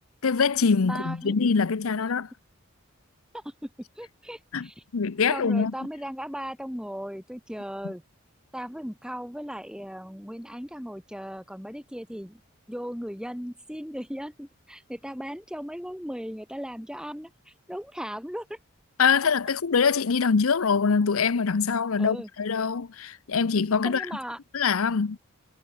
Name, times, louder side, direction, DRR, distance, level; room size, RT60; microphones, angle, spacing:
voice 1, 0.2-2.3 4.5-4.7 4.9-5.7 19.0-24.1 24.5-25.2, left 5 dB, 80° left, 0.7 m, -24 dB
voice 2, 0.9-1.4 3.3-3.7 4.0-4.8 5.3-8.0 8.5-12.4 12.7-18.6 22.0-22.3 23.8-24.4, equal, 5° right, 5.6 m, -37 dB
head